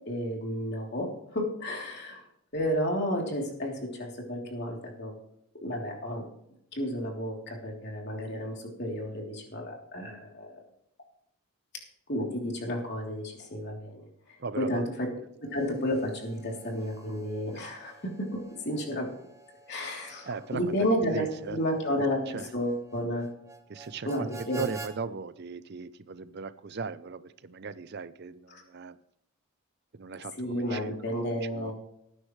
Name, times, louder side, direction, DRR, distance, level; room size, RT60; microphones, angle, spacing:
voice 1, 0.0-2.2 2.5-5.1 5.6-6.2 6.7-10.5 12.1-14.0 14.6-15.1 15.4-18.4 18.6-19.1 19.7-23.3 24.0-24.8 28.5-28.6 30.4-31.7, equal, 50° left, 0 dB, 3.2 m, -32 dB
voice 2, 14.4-14.9 17.5-17.6 20.3-21.6 21.9-22.0 22.3-22.5 23.7-24.3 24.5-29.0 29.9-30.9 31.3-31.7, right 5 dB, 50° right, 14 dB, 0.5 m, -38 dB
Harmonica, 15.4-24.9, right 3 dB, 15° right, 1.1 m, -50 dB
19.5 x 9.9 x 3.2 m, 0.75 s
head